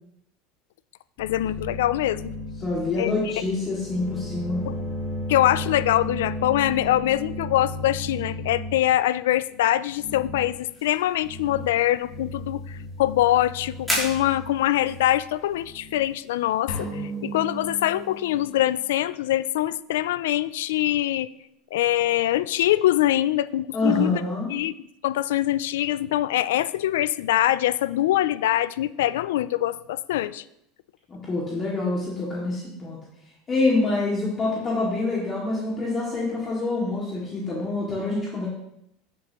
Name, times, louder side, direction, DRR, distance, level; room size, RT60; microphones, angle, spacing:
voice 1, 1.2-2.3 3.0-3.1 4.7-4.8 5.3-12.6 13.0-21.3 21.7-24.1 24.5-24.7 25.0-30.4, left 13 dB, 90° left, 17 dB, 0.3 m, -23 dB
sound 1, 1.2-8.9 9.9-10.5 11.2-11.8 12.0-16.1, left 1 dB, 45° left, 1.8 m, -35 dB
voice 2, 2.6-4.6 23.7-24.5 31.1-33.0 33.5-38.5, left 2 dB, 25° left, -5 dB, 2.2 m, -26 dB
sound 2, 10.3-18.8, left 1 dB, 5° left, 2.9 m, -38 dB
sound 3, 16.7-18.7, right 1 dB, 70° left, 2.1 m, -35 dB
9.7 x 7.1 x 3.0 m, 0.78 s
supercardioid pair, 130°, 0 cm